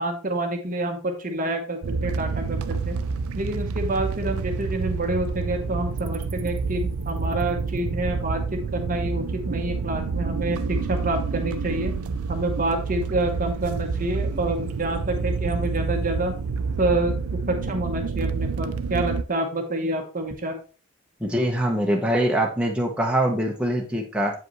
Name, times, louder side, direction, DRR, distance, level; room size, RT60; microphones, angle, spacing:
voice 1, 0.0-3.0 3.3-8.4 8.7-11.9 12.3-16.3 16.8-20.6, right 1 dB, 35° right, 4 dB, 0.9 m, -28 dB
sound 1, 1.8-19.2, right 4 dB, 75° right, 0.5 m, -28 dB
voice 2, 21.2-24.3, right 1 dB, 5° right, -1 dB, 1.0 m, -23 dB
8.0 x 5.1 x 3.1 m, 0.35 s
head